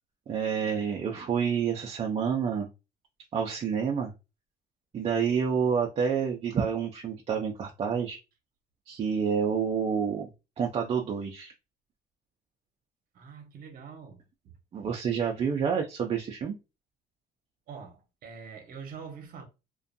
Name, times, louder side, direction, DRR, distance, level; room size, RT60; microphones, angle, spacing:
voice 1, 0.3-2.7 3.3-4.1 4.9-8.2 8.9-10.3 10.6-11.5 14.7-16.5, right 7 dB, 35° right, 0.4 m, -28 dB
voice 2, 13.1-14.5 14.8-14.9 17.7-19.4, right 6 dB, 55° right, 0.8 m, -45 dB
2.5 x 2.2 x 2.5 m
cardioid pair, 110°, 17 cm